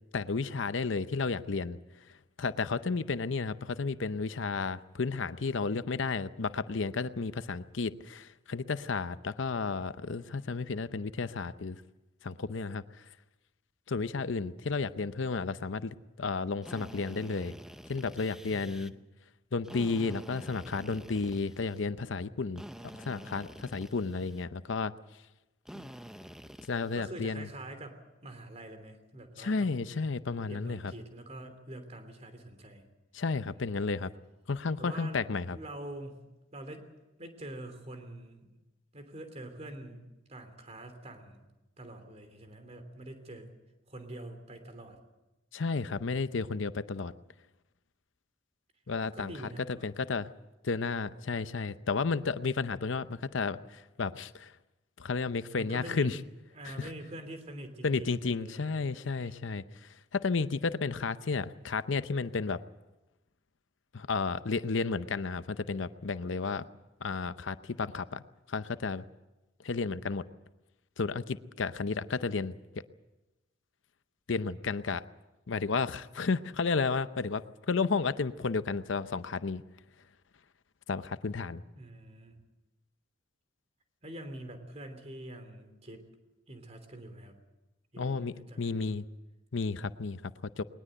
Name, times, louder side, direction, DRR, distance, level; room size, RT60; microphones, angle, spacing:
voice 1, 0.1-1.8 2.4-11.8 12.2-13.0 13.9-17.5 17.9-18.9 19.5-22.6 23.0-24.9 25.8-25.9 26.7-27.5 29.4-30.9 33.1-34.1 34.5-35.6 45.5-47.1 48.9-49.3 49.7-50.3 50.6-54.5 55.0-56.2 56.6-56.9 57.8-62.6 63.9-66.7 67.0-68.2 68.5-69.1 69.6-70.2 71.0-72.5 74.3-75.0 75.5-79.6 80.9-81.6 88.0-89.1 89.5-90.3 90.6-90.7, left 4 dB, 70° left, 13 dB, 0.7 m, -32 dB
Drill, 16.6-18.9 19.6-21.9 22.6-24.4 25.6-27.0, equal, 5° right, 0.7 m, -48 dB
voice 2, 18.5-18.9 26.9-29.8 30.5-32.8 33.5-33.9 34.8-36.2 36.5-36.9 37.2-38.5 38.9-41.4 41.8-43.5 43.9-45.0 49.1-49.9 55.6-56.1 56.5-58.9 59.2-59.3 81.7-82.4 84.0-86.0 86.5-87.3 87.9-89.0, right 1 dB, 35° right, 8 dB, 3.1 m, -45 dB
20.5 x 20.0 x 7.8 m, 1.0 s
head